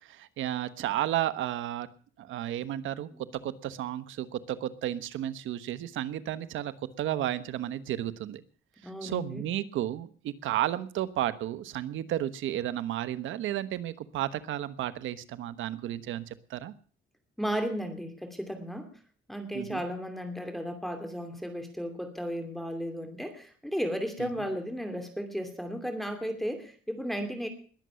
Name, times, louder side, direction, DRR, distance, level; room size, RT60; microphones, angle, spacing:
voice 1, 0.1-1.9 2.2-3.1 3.4-6.7 7.0-8.4 9.0-16.7 19.5-19.8 24.2-24.3, right 12 dB, 85° right, 13 dB, 1.1 m, -32 dB
voice 2, 8.8-9.5 17.4-18.9 19.3-27.5, equal, ahead, 6 dB, 2.6 m, -34 dB
21.0 x 7.7 x 6.9 m, 0.43 s
cardioid pair, 90°, 20 cm